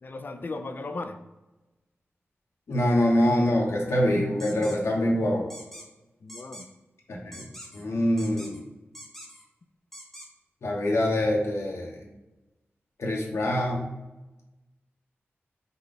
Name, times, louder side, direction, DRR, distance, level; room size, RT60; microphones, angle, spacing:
voice 1, 0.0-1.2 6.2-6.7, left 3 dB, 45° left, 7 dB, 0.4 m, -36 dB
voice 2, 2.7-5.5 7.1-7.5 7.7-8.6 10.6-12.1 13.0-13.9, left 1 dB, 85° left, -1 dB, 1.1 m, -25 dB
sound 1, 4.4-4.8 5.5-5.9 6.3-6.7 7.3-7.8 8.2-8.6 8.9-9.4 9.9-10.3, equal, 5° left, 0.8 m, -44 dB
5.4 x 2.4 x 3.9 m, 1.0 s
wide cardioid pair, 115°, 4 cm